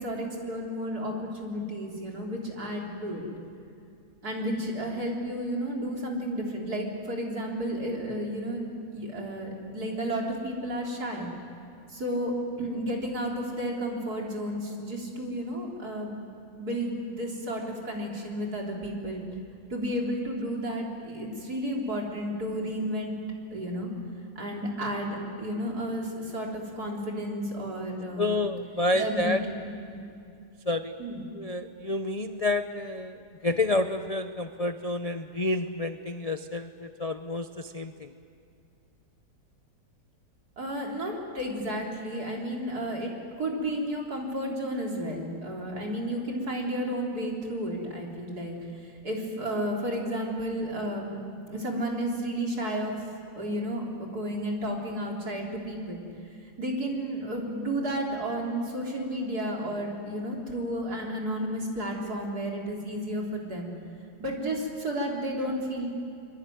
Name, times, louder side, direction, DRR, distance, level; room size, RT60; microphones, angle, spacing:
voice 1, 0.0-3.2 4.2-8.6 8.9-11.3 11.9-16.1 16.6-19.2 19.7-23.2 23.5-23.9 24.4-28.4 28.9-29.5 29.9-30.0 31.0-31.2 40.6-43.1 43.4-48.5 48.8-51.2 51.5-52.9 53.4-56.0 56.6-63.7 64.2-65.9, equal, 60° right, -1 dB, 4.2 m, -32 dB
voice 2, 28.2-29.4 30.7-31.0 31.3-38.1, left 2 dB, 70° left, 8 dB, 0.3 m, -29 dB
24.0 x 22.5 x 9.4 m, 2.4 s
omnidirectional pair, 1.9 m